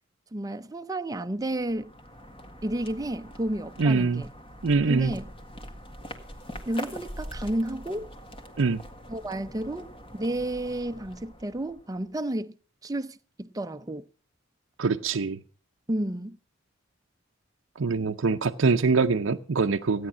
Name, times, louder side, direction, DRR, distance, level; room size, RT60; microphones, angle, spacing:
voice 1, 0.3-1.9 2.6-4.3 4.9-5.3 6.7-8.1 9.1-12.6 12.8-14.1 15.9-16.4, right 1 dB, 20° right, 0.6 m, -31 dB
sound 1, 1.4-12.1, equal, 25° left, 1.8 m, -43 dB
voice 2, 3.8-4.2 4.6-5.1 8.6-8.8 14.8-15.4 17.8-20.1, right 4 dB, 70° right, 0.6 m, -24 dB
15.5 x 9.5 x 6.1 m
head